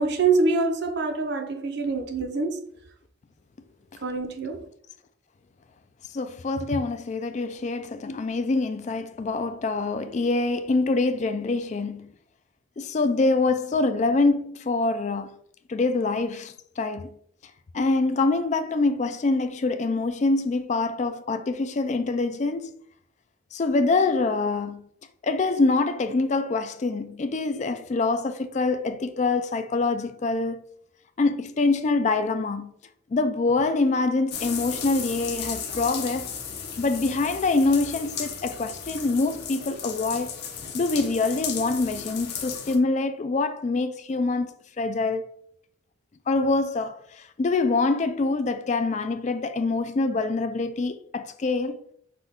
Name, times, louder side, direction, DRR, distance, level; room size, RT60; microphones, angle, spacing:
voice 1, 0.0-2.7 4.0-4.7, right 4 dB, 55° right, 0.7 m, -25 dB
voice 2, 6.1-12.1 12.8-15.3 15.7-17.2 17.7-22.8 23.5-24.9 25.2-30.6 31.2-32.7 33.1-36.3 36.8-40.4 40.7-44.5 44.8-45.3 46.3-51.8, left 3 dB, 35° left, 0.3 m, -25 dB
sound 1, 34.3-42.8, left 7 dB, 55° left, 0.8 m, -35 dB
5.8 x 2.3 x 3.5 m
head